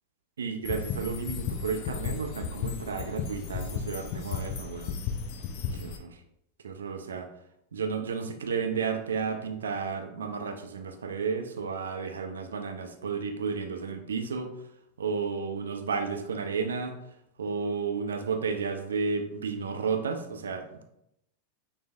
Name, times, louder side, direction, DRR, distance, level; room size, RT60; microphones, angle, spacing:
voice 1, 0.4-4.9 5.7-6.2 6.6-7.3 7.7-14.5 15.0-16.9 17.4-20.8, right 5 dB, 70° right, 6 dB, 0.5 m, -32 dB
sound 1, 0.6-6.0, left 6 dB, 45° left, 0.5 m, -34 dB
6.2 x 2.6 x 2.3 m, 0.78 s
figure-of-eight pair, 90°, 0 cm